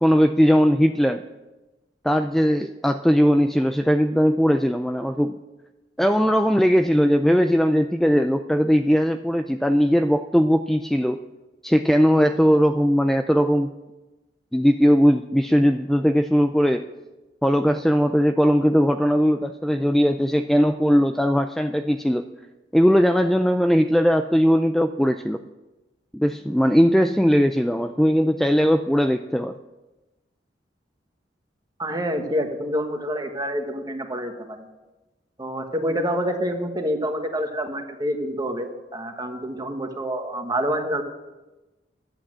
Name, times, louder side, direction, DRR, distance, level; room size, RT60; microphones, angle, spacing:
voice 1, 0.0-1.2 2.0-5.4 6.0-11.2 11.6-13.7 14.5-16.9 17.4-22.2 22.7-25.4 26.1-29.5, equal, ahead, 7 dB, 0.3 m, -19 dB
voice 2, 31.8-34.7 35.4-41.0, equal, 25° right, 5 dB, 1.3 m, -27 dB
11.5 x 8.5 x 7.5 m, 1.1 s
head